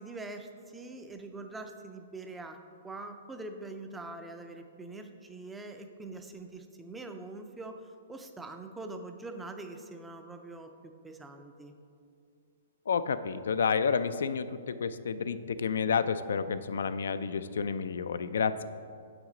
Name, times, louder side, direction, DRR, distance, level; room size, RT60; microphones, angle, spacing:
voice 1, 0.0-2.6 2.8-10.7 11.0-11.7, right 2 dB, 5° right, 6 dB, 0.3 m, -43 dB
voice 2, 12.9-18.6, left 6 dB, 85° left, 12 dB, 0.3 m, -30 dB
7.2 x 6.0 x 3.8 m, 2.4 s
hypercardioid pair, 165°, 0 cm